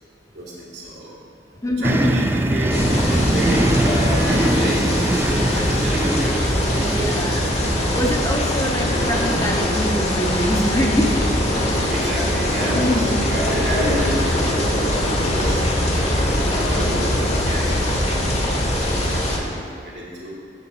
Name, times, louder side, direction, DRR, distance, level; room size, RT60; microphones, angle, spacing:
voice 1, 0.3-1.1 1.6-6.4 7.3-7.5 11.8-20.4, equal, 80° right, -5 dB, 2.3 m, -31 dB
voice 2, 1.6-2.2 6.9-7.7 7.9-11.2 11.7-12.0 12.7-13.2, left 1 dB, 20° left, 0 dB, 0.8 m, -24 dB
sound 1, 1.8-8.3, right 1 dB, 15° right, 0.3 m, -22 dB
sound 2, 2.7-19.4, left 1 dB, 40° left, 1.1 m, -22 dB
8.3 x 6.4 x 4.9 m, 2.3 s
head